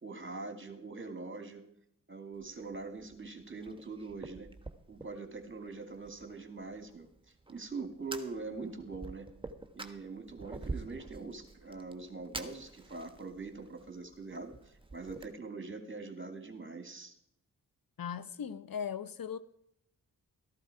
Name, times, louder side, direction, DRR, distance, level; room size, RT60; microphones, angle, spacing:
voice 1, 0.0-1.6 2.1-4.5 4.9-7.1 7.5-9.3 9.7-17.2, right 3 dB, 30° right, 7 dB, 2.4 m, -43 dB
Fire, 2.3-15.3, right 3 dB, 15° right, 1.4 m, -48 dB
voice 2, 18.0-19.4, left 8 dB, 60° left, 15 dB, 0.8 m, -38 dB
14.0 x 11.5 x 4.8 m, 0.74 s
cardioid pair, 45°, 38 cm